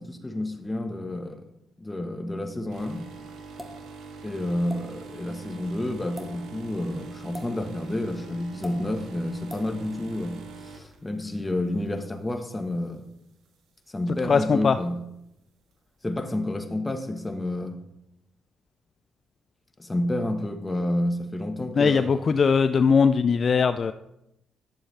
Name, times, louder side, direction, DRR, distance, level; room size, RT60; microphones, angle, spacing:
voice 1, 0.0-1.5 1.8-3.0 4.2-13.0 13.9-15.0 16.0-17.8 19.8-22.2, left 1 dB, 15° left, 6 dB, 1.2 m, -30 dB
sound 1, 2.7-11.9 12.3-12.6 13.4-13.5, right 4 dB, 80° right, 1.5 m, -44 dB
sound 2, 3.6-3.8 4.7-4.8 6.0-6.3 7.3-7.5 8.6-8.8 9.5-9.7, equal, 5° right, 1.8 m, -39 dB
voice 2, 14.2-14.8 21.8-23.9, left 5 dB, 45° left, 11 dB, 0.3 m, -20 dB
11.5 x 6.9 x 3.3 m, 0.85 s
cardioid pair, 90°, 0 cm